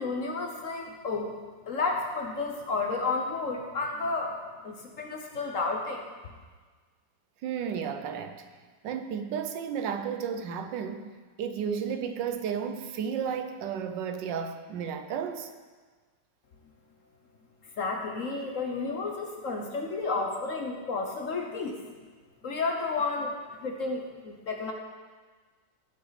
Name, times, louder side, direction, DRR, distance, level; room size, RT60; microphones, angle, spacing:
voice 1, 0.0-1.3 1.7-4.3 4.6-6.0 17.8-21.8 22.4-23.3 23.6-24.7, left 3 dB, 50° left, 2 dB, 1.2 m, -31 dB
voice 2, 7.4-8.4 8.8-11.1 11.4-15.5, right 7 dB, 75° right, 7 dB, 1.4 m, -33 dB
16.0 x 6.0 x 4.1 m, 1.4 s
omnidirectional pair, 2.0 m